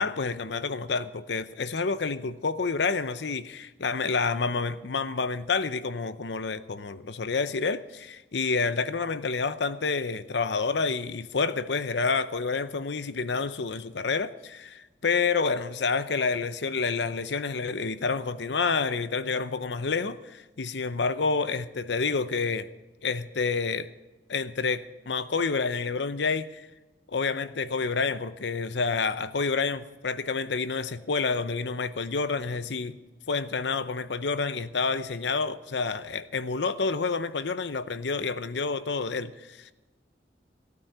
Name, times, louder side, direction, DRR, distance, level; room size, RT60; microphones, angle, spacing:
voice 1, 0.0-22.7 23.0-23.9 24.3-26.7 27.1-33.0 33.3-39.7, left 4 dB, 80° left, 0.7 m, -29 dB
17.5 x 9.4 x 6.8 m
head